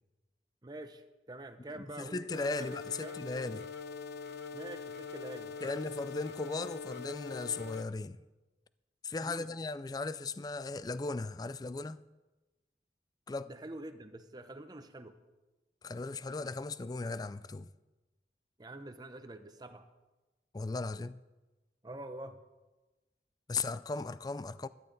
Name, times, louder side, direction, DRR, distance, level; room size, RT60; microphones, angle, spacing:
voice 1, 0.6-3.2 4.5-5.8 9.2-9.5 13.5-15.1 18.6-19.9 21.8-22.4, right 1 dB, 25° right, 0.8 m, -46 dB
voice 2, 1.8-3.7 5.6-8.2 9.0-12.0 13.3-13.5 15.8-17.7 20.5-21.2 23.5-24.7, left 3 dB, 20° left, 0.3 m, -37 dB
sound 1, 2.3-7.8, left 5 dB, 70° left, 0.8 m, -43 dB
16.0 x 12.0 x 4.0 m
head